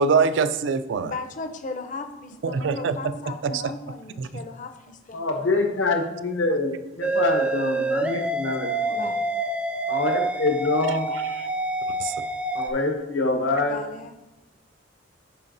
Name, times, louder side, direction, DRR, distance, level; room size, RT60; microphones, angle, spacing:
voice 1, 0.0-1.1 2.4-3.1 3.4-3.7 4.2-4.3 11.1-11.4 12.0-12.2, right 5 dB, 75° right, 13 dB, 0.4 m, -24 dB
voice 2, 1.0-5.4 8.9-9.3 13.7-14.2, left 3 dB, 40° left, 6 dB, 0.5 m, -36 dB
voice 3, 5.1-9.1 9.9-11.1 12.5-13.8, left 3 dB, 85° left, 4 dB, 1.0 m, -25 dB
sound 1, 7.0-12.7, right 2 dB, 5° right, 0.4 m, -27 dB
10.5 x 4.7 x 2.6 m, 0.98 s
head